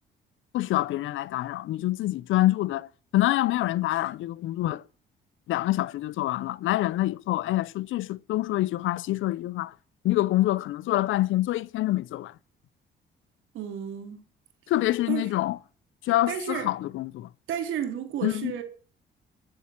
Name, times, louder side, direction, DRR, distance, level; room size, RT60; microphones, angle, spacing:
voice 1, 0.5-4.8 5.5-9.7 10.0-12.3 14.7-15.6 16.0-17.3 18.2-18.5, left 15 dB, 80° left, 0.6 m, -26 dB
voice 2, 13.5-14.2 15.1-15.3 16.3-16.7 17.5-18.6, right 9 dB, 85° right, 3.4 m, -32 dB
14.5 x 8.0 x 7.3 m
cardioid pair, 90°, 20 cm